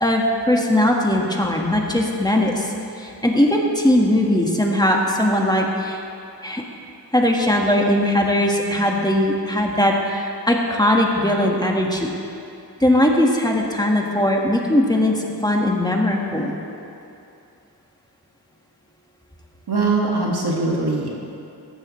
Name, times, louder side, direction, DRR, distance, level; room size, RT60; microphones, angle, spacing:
voice 1, 0.0-6.0 6.4-6.6 7.1-12.1 12.8-16.5, left 1 dB, 10° left, 0 dB, 1.6 m, -19 dB
voice 2, 19.7-21.1, right 3 dB, 80° right, -3 dB, 2.0 m, -21 dB
15.0 x 12.0 x 3.2 m, 2.7 s
cardioid pair, 45°, 39 cm